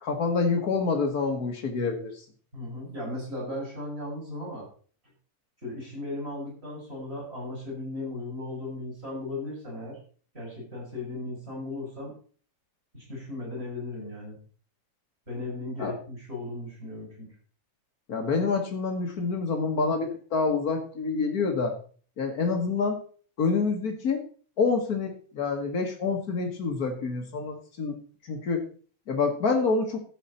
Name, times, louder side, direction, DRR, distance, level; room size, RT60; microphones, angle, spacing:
voice 1, 0.0-2.1 15.8-15.9 18.1-21.7 22.2-23.0 23.4-24.2 24.6-28.0 28.2-28.6 29.1-30.0, left 4 dB, 80° left, 3 dB, 0.8 m, -27 dB
voice 2, 2.5-4.7 5.6-10.0 10.3-12.1 12.9-14.4 15.3-17.3, left 2 dB, 15° right, -3 dB, 6.5 m, -36 dB
13.0 x 8.2 x 4.2 m, 0.43 s
omnidirectional pair, 3.8 m